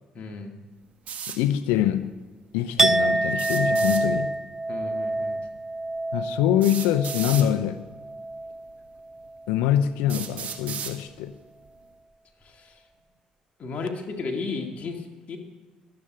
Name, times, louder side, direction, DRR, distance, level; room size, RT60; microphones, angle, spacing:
voice 1, 0.1-0.5 4.7-5.5 12.4-12.8 13.6-15.4, left 4 dB, 55° left, 2.2 m, -34 dB
sound 1, 1.1-1.4 3.3-4.0 5.5-5.6 6.6-7.5 8.5-8.6 9.2-9.3 10.1-11.0, right 8 dB, 60° right, 1.4 m, -34 dB
voice 2, 1.3-2.1 2.5-4.3 6.1-7.8 9.5-11.4, left 11 dB, 90° left, 0.6 m, -24 dB
Chink clink, 2.8-8.7 9.0-9.4, right 2 dB, 15° right, 0.4 m, -27 dB
12.0 x 7.7 x 8.5 m
supercardioid pair, 70°, 3 cm